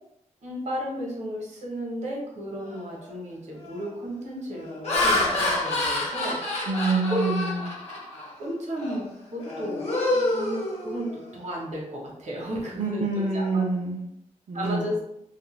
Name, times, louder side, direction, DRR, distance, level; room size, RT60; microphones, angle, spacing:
voice 1, 0.4-6.7 7.1-7.2 8.4-13.6 14.5-15.0, equal, 65° right, -2 dB, 0.9 m, -34 dB
Laughter, 2.7-3.0 3.6-3.9 4.5-8.3 8.8-9.0 9.4-11.3, left 2 dB, 55° left, 0.8 m, -28 dB
voice 2, 6.7-7.7 12.8-14.1 14.5-15.0, right 3 dB, 50° right, -3 dB, 0.4 m, -26 dB
2.3 x 2.1 x 3.0 m, 0.80 s
wide cardioid pair, 125°, 13 cm